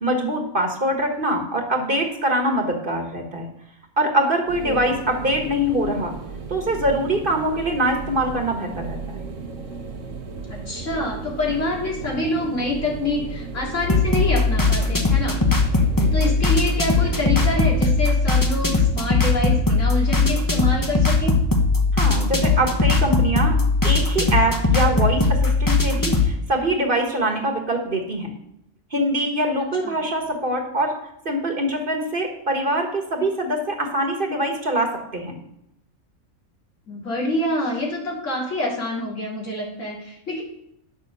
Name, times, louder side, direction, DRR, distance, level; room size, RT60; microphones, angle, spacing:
voice 1, 0.0-3.5 4.0-6.1 6.5-9.2 16.0-16.1 21.9-23.5 23.8-25.2 25.6-28.3 28.9-30.9 31.2-34.9 35.1-35.3, right 1 dB, 40° right, 3 dB, 1.6 m, -23 dB
sound 1, 4.5-17.9, right 4 dB, 65° right, 1.5 m, -35 dB
voice 2, 4.6-5.0 10.5-15.4 16.1-21.3 29.8-29.9 36.9-40.4, left 1 dB, 65° left, -4 dB, 3.2 m, -26 dB
sound 2, 13.8-26.3, left 3 dB, 15° left, 1.0 m, -19 dB
10.0 x 6.8 x 6.6 m, 0.79 s
omnidirectional pair, 1.4 m